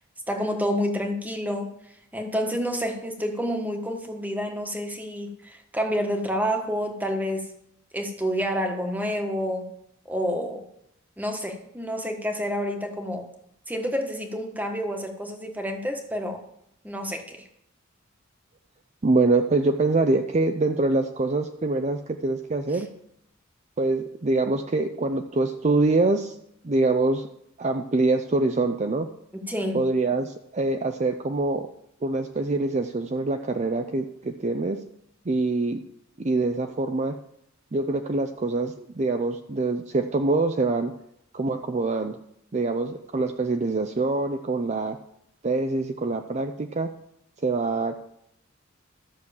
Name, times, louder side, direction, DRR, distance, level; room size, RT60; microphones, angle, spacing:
voice 1, 0.3-1.7 2.1-7.5 7.9-9.7 10.0-10.6 11.2-13.3 13.7-16.4 16.8-17.4 29.4-29.8, equal, 10° right, 4 dB, 1.4 m, -29 dB
voice 2, 19.0-22.9 23.8-26.4 26.6-27.3 27.6-29.1 29.7-31.7 32.0-34.8 35.3-35.8 36.2-37.2 37.7-40.9 41.3-42.2 42.5-45.0 45.4-46.9 47.4-48.0, right 3 dB, 35° right, 6 dB, 0.5 m, -24 dB
13.0 x 6.3 x 7.1 m, 0.76 s
head